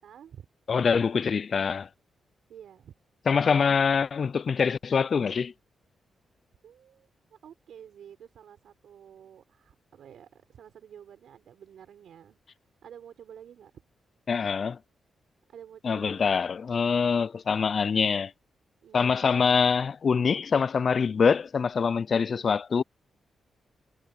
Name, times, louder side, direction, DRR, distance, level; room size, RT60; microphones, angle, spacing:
voice 1, 0.0-0.5 2.5-2.9 6.6-12.4 12.8-13.7 15.5-16.3 18.8-19.3, right 9 dB, 80° right, 6.0 m, -50 dB
voice 2, 0.7-1.9 3.3-5.5 14.3-14.8 15.8-18.3 18.9-22.8, left 6 dB, 50° left, 0.3 m, -24 dB
cardioid pair, 110°, 0 cm